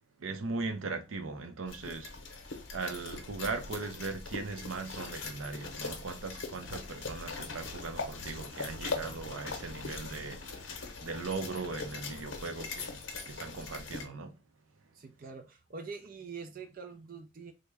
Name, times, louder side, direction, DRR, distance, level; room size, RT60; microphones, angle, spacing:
voice 1, 0.2-2.4 2.7-14.4, right 3 dB, 85° right, 0.6 m, -39 dB
sound 1, 1.7-14.1, left 4 dB, 75° left, 0.7 m, -41 dB
voice 2, 14.9-17.5, right 5 dB, 45° right, 0.4 m, -45 dB
3.3 x 2.1 x 3.3 m
head